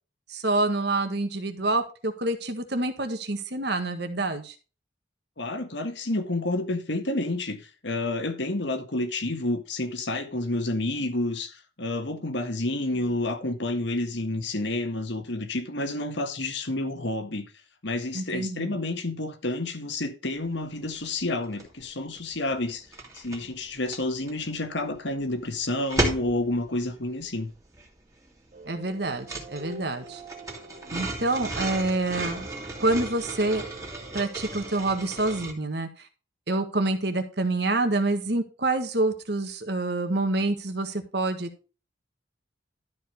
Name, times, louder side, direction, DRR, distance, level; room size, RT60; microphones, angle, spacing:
voice 1, 0.3-4.5 18.1-18.8 28.7-30.2 30.9-32.5 32.8-33.6 34.1-35.9 36.5-41.5, right 2 dB, 55° right, 1.7 m, -27 dB
voice 2, 5.4-17.5 17.8-22.9 23.1-27.5, left 2 dB, 70° left, 1.6 m, -29 dB
sound 1, 20.4-20.6 20.8-21.9 22.1-35.5, right 1 dB, 15° right, 2.3 m, -35 dB
sound 2, 28.5-35.4, right 2 dB, 35° right, 1.3 m, -45 dB
12.5 x 4.9 x 4.9 m
head